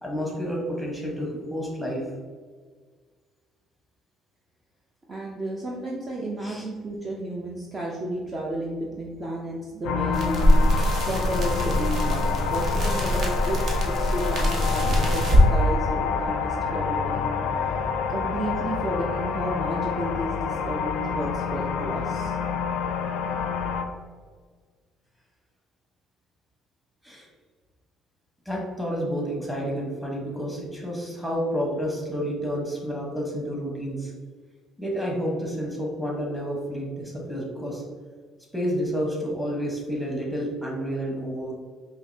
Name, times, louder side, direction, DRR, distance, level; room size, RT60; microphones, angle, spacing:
voice 1, 0.0-2.1 6.4-6.7 27.0-27.3 28.4-34.1 34.8-37.8 38.5-41.5, equal, ahead, -2 dB, 1.1 m, -30 dB
voice 2, 5.1-17.3 18.1-22.4, right 1 dB, 30° right, -3 dB, 0.5 m, -32 dB
sound 1, 9.8-23.8, left 6 dB, 75° left, 0.4 m, -28 dB
sound 2, 10.1-15.5, equal, 55° right, 0.9 m, -23 dB
4.9 x 2.8 x 2.7 m, 1.5 s
cardioid pair, 115°, 0 cm